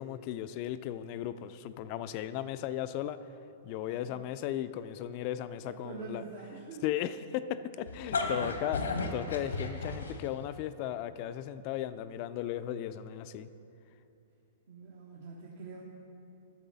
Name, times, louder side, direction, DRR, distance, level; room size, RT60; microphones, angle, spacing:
voice 1, 0.0-3.2 3.6-6.2 6.8-13.5, left 11 dB, 45° left, 13 dB, 0.4 m, -36 dB
voice 2, 3.9-4.2 5.6-6.8 8.1-8.3 14.7-15.8, right 5 dB, 65° right, -2 dB, 1.1 m, -46 dB
sound 1, 7.9-10.5, left 3 dB, 85° left, 1.0 m, -33 dB
11.5 x 6.7 x 4.0 m, 2.8 s
hypercardioid pair, 115°, 0 cm